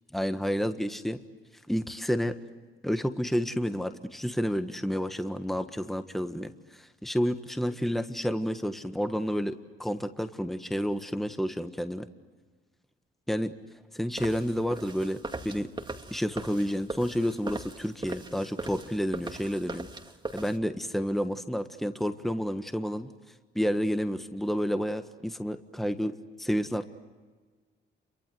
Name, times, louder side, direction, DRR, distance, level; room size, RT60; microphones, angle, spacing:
voice 1, 0.1-1.2 1.7-2.4 2.8-12.1 13.3-13.5 13.9-15.2 15.4-15.7 16.1-19.9 20.3-23.1 23.5-26.1 26.4-26.9, equal, ahead, 8 dB, 1.5 m, -30 dB
sound 1, 14.2-20.6, right 3 dB, 20° right, 2.2 m, -40 dB
29.0 x 24.0 x 7.8 m, 1.4 s
cardioid pair, 90°, 20 cm